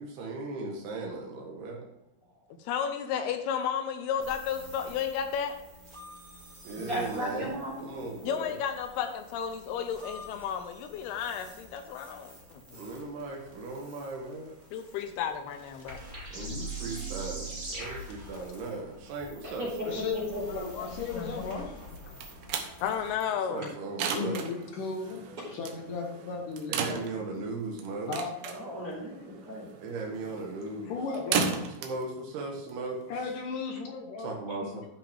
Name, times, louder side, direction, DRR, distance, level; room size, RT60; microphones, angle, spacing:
voice 1, 0.0-1.9 6.7-7.5 7.8-8.6 12.8-14.5 16.3-20.0 23.5-24.4 26.7-28.1 29.8-30.9 31.8-33.0 34.2-34.9, right 3 dB, 85° right, -1 dB, 3.3 m, -37 dB
voice 2, 2.6-5.5 8.2-12.9 14.7-16.0 20.5-21.7 22.1-22.2 22.8-23.7, left 8 dB, 85° left, 7 dB, 2.6 m, -33 dB
sound 1, 4.2-23.1, right 2 dB, 20° right, 1.3 m, -45 dB
voice 3, 6.7-7.9 19.4-20.4 25.3-25.4 28.4-29.7, equal, 40° right, -5 dB, 3.4 m, -35 dB
voice 4, 19.9-21.9 24.1-25.2 25.5-27.0 28.1-28.3 28.8-29.0 30.9-31.6 33.1-34.8, left 4 dB, 65° left, 2 dB, 2.3 m, -36 dB
sound 2, 21.9-33.3, right 6 dB, 70° right, 2.5 m, -36 dB
12.5 x 5.9 x 3.5 m, 0.90 s
omnidirectional pair, 4.5 m